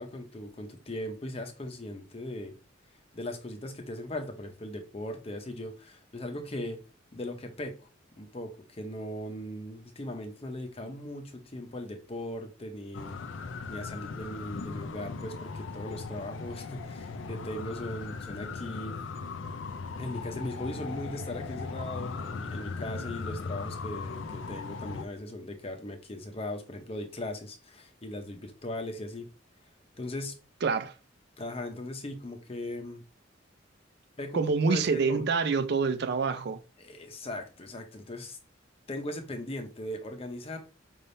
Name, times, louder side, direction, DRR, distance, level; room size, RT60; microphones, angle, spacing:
voice 1, 0.0-2.5 3.1-6.8 7.1-7.9 8.2-13.2 13.7-19.0 20.0-29.3 30.0-30.3 31.4-33.0 34.2-35.2 36.8-38.4 38.9-40.6, left 1 dB, 30° left, 0.8 m, -38 dB
sound 1, 12.9-25.1, left 4 dB, 80° left, 0.5 m, -38 dB
voice 2, 30.6-30.9 34.3-36.6, right 4 dB, 55° right, 0.4 m, -26 dB
5.4 x 3.4 x 2.7 m
head